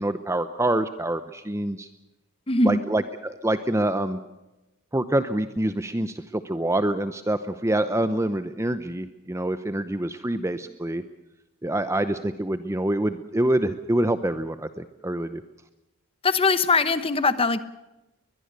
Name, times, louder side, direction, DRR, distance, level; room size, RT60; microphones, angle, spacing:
voice 1, 0.0-1.9 2.6-4.2 4.9-11.0 11.6-15.4, right 1 dB, 15° right, 11 dB, 0.7 m, -26 dB
voice 2, 2.5-2.8 16.2-17.6, left 3 dB, 25° left, 13 dB, 1.0 m, -21 dB
22.0 x 22.0 x 6.8 m, 1.0 s
head